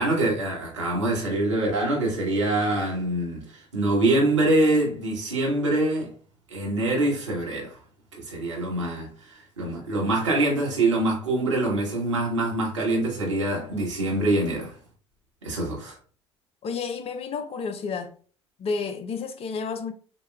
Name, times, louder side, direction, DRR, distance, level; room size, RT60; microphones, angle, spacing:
voice 1, 0.0-6.1 6.5-7.8 8.2-14.7 15.4-16.0, right 2 dB, 85° right, 1.3 m, -24 dB
voice 2, 16.6-18.1 18.6-19.9, left 5 dB, 40° left, 0.7 m, -31 dB
5.9 x 2.3 x 2.3 m
figure-of-eight pair, 60°, 15 cm